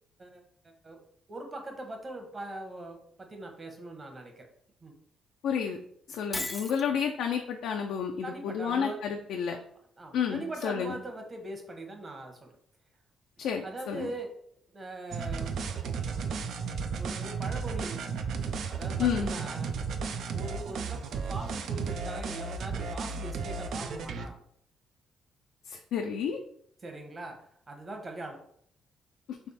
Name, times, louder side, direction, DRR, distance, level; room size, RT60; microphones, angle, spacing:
voice 1, 1.3-4.5 4.8-4.9 8.2-9.0 10.0-12.5 13.6-14.3 14.7-15.5 17.0-18.0 18.7-19.8 20.3-24.4 26.8-27.4 27.7-28.4, right 2 dB, 30° right, 3 dB, 1.1 m, -41 dB
voice 2, 5.4-5.8 6.1-9.6 10.1-11.0 13.4-14.1 19.0-19.3 25.7-26.4, left 7 dB, 80° left, 3 dB, 0.4 m, -30 dB
Shatter, 6.3-6.9, left 2 dB, 15° left, 0.4 m, -35 dB
sound 1, 15.1-24.3, right 5 dB, 70° right, 0.4 m, -34 dB
3.4 x 3.2 x 4.2 m, 0.66 s
cardioid pair, 90°, 0 cm